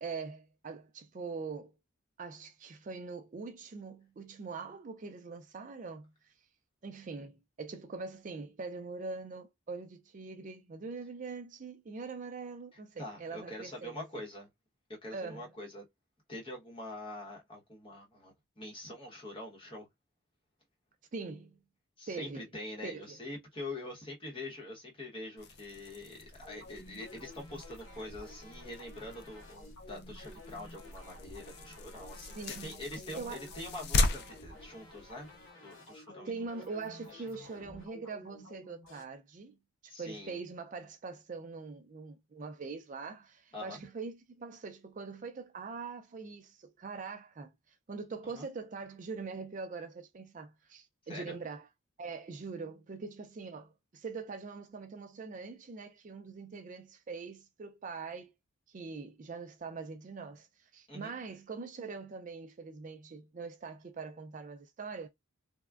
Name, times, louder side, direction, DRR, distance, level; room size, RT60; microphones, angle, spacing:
voice 1, 0.0-1.7 2.2-6.3 6.8-14.1 15.1-15.5 21.1-21.6 22.1-22.5 22.8-23.2 32.3-32.8 33.1-33.4 36.1-39.6 39.8-51.7 52.0-58.3 58.7-65.1, right 4 dB, 35° right, 0.3 m, -43 dB
voice 2, 12.7-14.5 15.0-15.8 16.3-19.9 22.0-35.3 35.6-36.5 37.1-37.2 39.9-40.4 43.5-43.8 48.3-48.4 51.0-51.4 60.9-61.1, left 1 dB, 25° left, 0.9 m, -45 dB
sound 1, 25.4-35.5, left 2 dB, 50° left, 0.4 m, -38 dB
sound 2, 26.4-39.0, left 1 dB, 90° left, 2.0 m, -53 dB
3.4 x 2.1 x 2.3 m
head